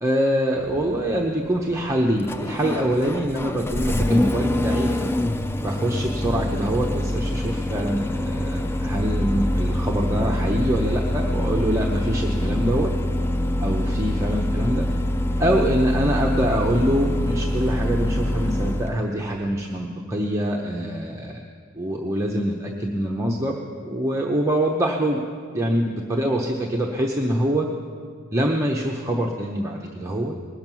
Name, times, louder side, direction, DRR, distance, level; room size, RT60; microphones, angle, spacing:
voice 1, 0.0-5.2 5.6-12.9 13.6-14.9 15.4-21.4 21.8-25.2 25.5-27.7 28.3-30.4, equal, 15° right, -1 dB, 0.7 m, -24 dB
Engine starting, 0.6-19.0, left 1 dB, 10° left, 0.3 m, -25 dB
20.0 x 7.2 x 6.0 m, 2.1 s
head